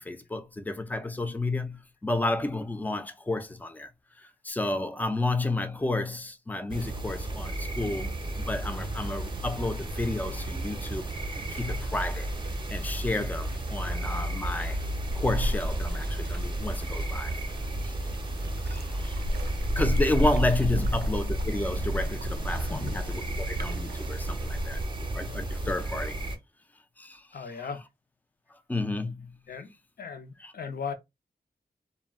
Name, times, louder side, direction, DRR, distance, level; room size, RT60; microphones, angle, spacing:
voice 1, 0.0-3.9 4.2-11.0 11.3-12.3 12.7-14.8 15.1-17.3 17.8-17.9 18.6-19.2 19.8-24.8 25.1-26.2 27.0-27.2 28.7-29.4 30.4-30.5, left 2 dB, 10° left, 0.4 m, -31 dB
sound 1, 6.7-26.4, right 1 dB, 30° right, 0.6 m, -33 dB
sound 2, 8.7-24.8, equal, 75° right, 0.4 m, -35 dB
voice 2, 22.7-23.0 27.3-27.8 29.5-29.7 30.0-30.9, left 5 dB, 65° left, 0.5 m, -37 dB
2.3 x 2.1 x 3.4 m
wide cardioid pair, 100°, 17 cm